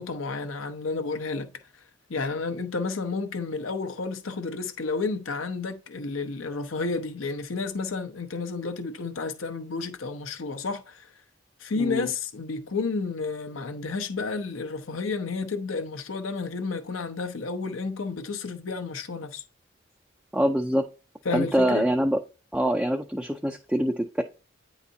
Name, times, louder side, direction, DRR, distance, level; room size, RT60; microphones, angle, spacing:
voice 1, 0.0-1.5 2.1-11.1 11.6-19.4 21.2-21.9, left 4 dB, 80° left, 0.8 m, -31 dB
voice 2, 11.8-12.1 20.3-20.8 21.3-22.2 22.5-24.2, equal, 5° right, 0.3 m, -24 dB
9.1 x 4.0 x 2.7 m
head